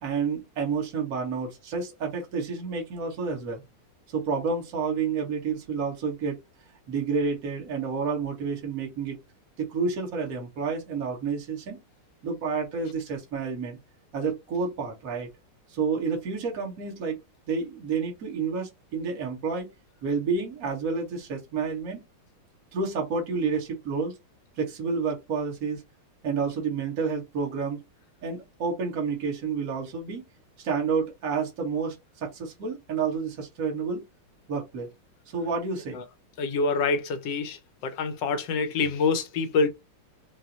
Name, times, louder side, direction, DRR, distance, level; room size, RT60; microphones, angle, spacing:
voice 1, 0.0-3.6 4.1-6.4 6.9-9.2 9.6-11.8 12.2-13.8 14.1-15.3 15.7-17.2 17.5-19.7 20.0-22.0 22.7-24.2 24.6-25.8 26.2-27.8 28.2-30.2 30.6-34.0 34.5-34.9 35.3-36.0, right 5 dB, 45° right, 1.5 m, -29 dB
voice 2, 36.4-37.6 37.8-39.7, left 4 dB, 70° left, 1.3 m, -26 dB
5.8 x 2.2 x 2.6 m
omnidirectional pair, 2.3 m